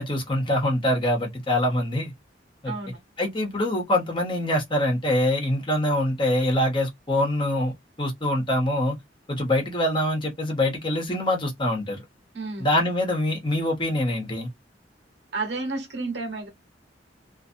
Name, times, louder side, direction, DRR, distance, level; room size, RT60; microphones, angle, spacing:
voice 1, 0.0-2.1 2.6-2.7 3.2-9.0 9.3-12.0 12.6-14.5, left 1 dB, 30° left, 1.1 m, -24 dB
voice 2, 2.6-3.0 12.3-12.7 15.3-16.5, right 3 dB, 85° right, 1.2 m, -31 dB
2.6 x 2.4 x 2.5 m
head